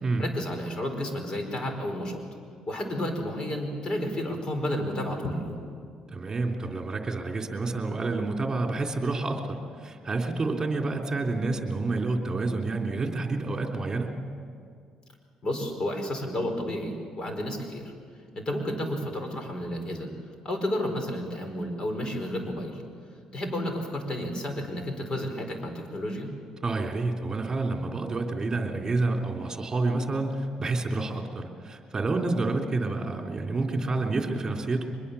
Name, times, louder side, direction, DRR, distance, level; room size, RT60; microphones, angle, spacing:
voice 1, 0.2-2.2 2.7-5.6 15.4-17.9 18.3-20.1 20.4-22.8 23.3-26.3, left 1 dB, 40° left, 5 dB, 4.9 m, -31 dB
voice 2, 6.1-14.1 26.6-34.9, right 3 dB, 25° right, 2 dB, 3.4 m, -29 dB
23.5 x 21.5 x 7.1 m, 2.2 s
cardioid pair, 85°, 2 cm